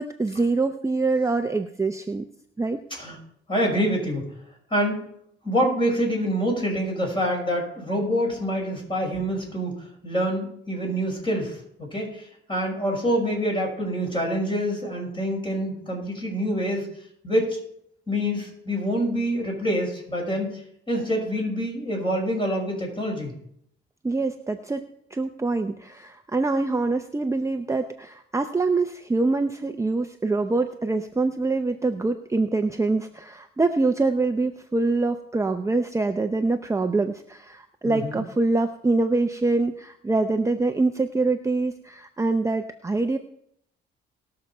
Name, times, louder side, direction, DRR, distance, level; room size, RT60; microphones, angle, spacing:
voice 1, 0.0-2.2 2.6-2.8 24.0-24.8 25.1-43.2, right 3 dB, 15° right, 6 dB, 0.7 m, -25 dB
voice 2, 3.5-4.3 4.7-5.0 5.4-9.7 10.0-16.9 17.2-17.6 18.1-20.6 20.9-23.3 37.8-38.2, equal, 25° left, 0 dB, 5.9 m, -26 dB
19.5 x 6.8 x 4.4 m, 0.70 s
cardioid pair, 90°, 20 cm